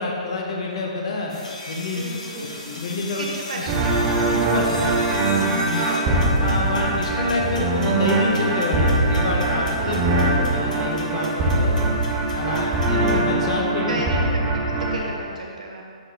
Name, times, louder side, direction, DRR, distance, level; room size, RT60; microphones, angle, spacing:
voice 1, 0.0-1.3 1.7-3.3 3.5-3.6 4.3-5.0 5.4-5.8 6.4-11.9 12.3-14.0, left 3 dB, 50° left, 0 dB, 1.1 m, -27 dB
sound 1, 1.3-13.3, left 2 dB, 85° left, 1.3 m, -39 dB
voice 2, 1.9-2.5 3.2-4.1 5.7-6.2 9.8-10.4 12.3-12.8 13.9-15.8, right 2 dB, 90° right, -1 dB, 1.4 m, -34 dB
sound 2, 3.7-15.0, right 2 dB, 15° right, 0.5 m, -22 dB
6.0 x 5.1 x 3.8 m, 2.2 s
hypercardioid pair, 175°, 4 cm